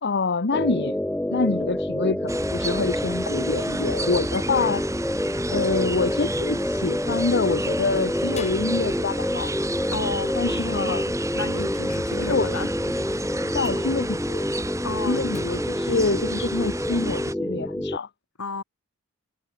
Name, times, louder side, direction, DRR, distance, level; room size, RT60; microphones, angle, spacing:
voice 1, 0.0-1.0 1.3-4.8 5.5-9.5 10.4-11.1 12.2-12.6 13.5-14.5 14.9-18.1, left 3 dB, 50° left, 1.1 m, -26 dB
sound 1, 0.5-18.0, left 1 dB, 5° left, 0.4 m, -28 dB
sound 2, 2.3-17.3, right 2 dB, 15° right, 1.3 m, -33 dB
sound 3, 5.6-6.7 8.4-12.1 13.6-13.7 15.3-16.9, left 3 dB, 30° left, 4.1 m, -46 dB
voice 2, 9.9-13.1 14.8-15.3 18.4-18.6, left 3 dB, 75° left, 3.6 m, -33 dB
head